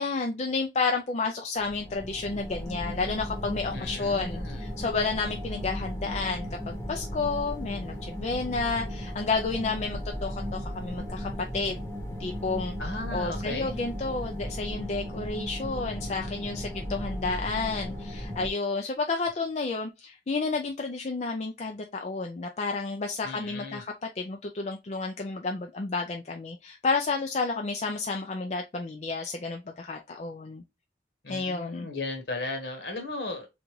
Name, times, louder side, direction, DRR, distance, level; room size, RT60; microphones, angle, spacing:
voice 1, 0.0-11.8 12.2-12.7 13.1-30.6 31.3-31.9, left 4 dB, 40° left, 0.4 m, -31 dB
sound 1, 1.6-18.5, equal, 15° left, 1.0 m, -36 dB
voice 2, 3.7-4.6 12.8-13.7 23.2-23.8 31.2-33.5, left 2 dB, 65° left, 1.3 m, -36 dB
3.8 x 3.6 x 3.1 m
head